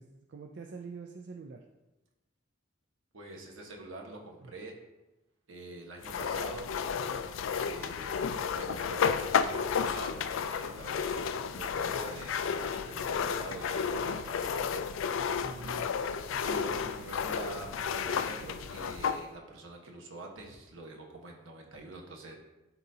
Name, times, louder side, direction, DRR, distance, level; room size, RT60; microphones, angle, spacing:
voice 1, 0.0-1.6 4.4-4.5 7.1-7.3 15.3-15.8, right 4 dB, 60° right, 3 dB, 0.4 m, -45 dB
voice 2, 3.1-4.7 5.5-6.7 7.5-14.8 15.6-15.8 16.4-22.3, right 2 dB, 90° right, 1 dB, 1.3 m, -45 dB
sound 1, 6.0-19.2, left 6 dB, 80° left, 0.4 m, -32 dB
11.5 x 4.0 x 2.8 m, 1.0 s
head